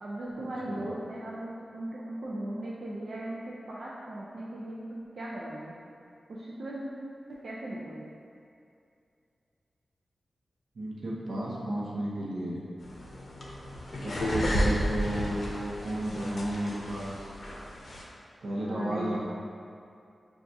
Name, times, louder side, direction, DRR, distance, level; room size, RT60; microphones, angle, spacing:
voice 1, 0.0-5.8 6.3-6.9 7.3-8.1 18.6-19.2, right 1 dB, 55° right, -6 dB, 0.4 m, -38 dB
voice 2, 10.8-12.6 14.0-17.3 18.4-19.2, right 1 dB, 85° right, -5 dB, 0.7 m, -33 dB
sound 1, 12.8-18.0, equal, 50° left, 0.6 m, -32 dB
5.7 x 2.3 x 2.6 m, 2.5 s
wide cardioid pair, 165°, 0 cm